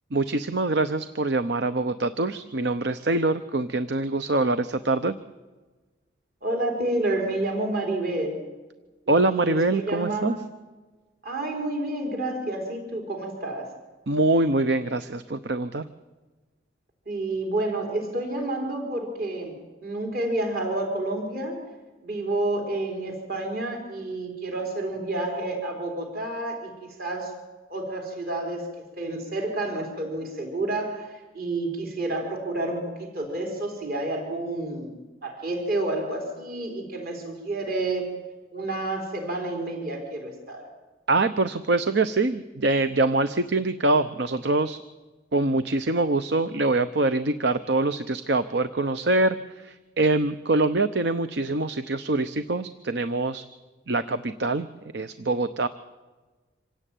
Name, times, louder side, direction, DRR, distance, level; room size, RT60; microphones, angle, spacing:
voice 1, 0.1-5.1 9.1-10.4 14.1-15.9 41.1-44.8 45.3-53.4 53.9-54.7 54.9-55.7, right 2 dB, 70° right, 10 dB, 0.9 m, -24 dB
voice 2, 6.4-8.4 9.1-10.4 11.2-13.7 17.1-21.6 22.0-26.7 27.0-27.3 27.7-28.6 29.0-38.1 38.5-40.7, right 2 dB, 55° right, 2 dB, 4.4 m, -29 dB
26.0 x 17.0 x 9.3 m, 1.3 s
head